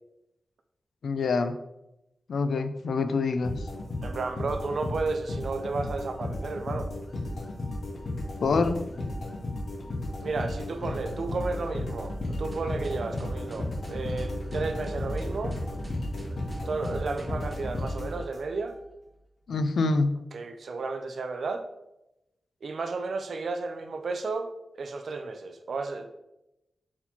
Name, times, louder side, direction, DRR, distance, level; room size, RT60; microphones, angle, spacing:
voice 1, 1.0-1.6 2.3-3.5 8.4-8.8 19.5-20.2, left 4 dB, 85° left, 10 dB, 0.3 m, -26 dB
sound 1, 3.4-18.7, left 1 dB, 60° left, 0.8 m, -34 dB
voice 2, 4.0-6.9 10.2-15.6 16.7-18.7 20.3-21.7 22.6-24.5 24.7-26.1, right 3 dB, 65° right, 7 dB, 0.4 m, -33 dB
sound 2, 12.5-17.8, right 1 dB, 25° right, 0.7 m, -39 dB
4.2 x 4.1 x 2.8 m, 0.90 s
wide cardioid pair, 145°, 0 cm